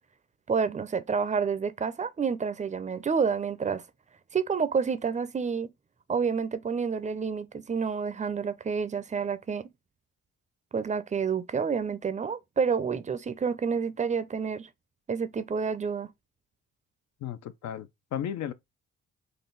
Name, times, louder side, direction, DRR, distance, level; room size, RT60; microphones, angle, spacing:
voice 1, 0.5-3.8 4.3-5.7 6.1-9.6 10.7-14.7 15.1-16.1, right 6 dB, 25° right, 0.5 m, -29 dB
voice 2, 17.2-18.5, left 10 dB, 65° left, 0.6 m, -34 dB
3.9 x 2.3 x 3.9 m
cardioid pair, 90°, 30 cm